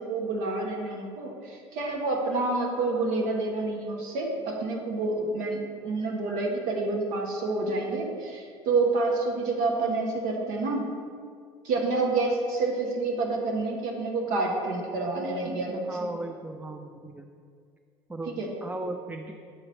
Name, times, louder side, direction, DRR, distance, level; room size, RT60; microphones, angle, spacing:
voice 1, 0.0-10.9 11.6-16.1 18.3-18.5, right 3 dB, 65° right, 0 dB, 1.1 m, -28 dB
voice 2, 15.9-17.3 18.1-18.4 18.6-19.3, right 2 dB, 10° right, 4 dB, 0.4 m, -36 dB
8.0 x 4.1 x 4.0 m, 2.2 s
hypercardioid pair, 70°, 14 cm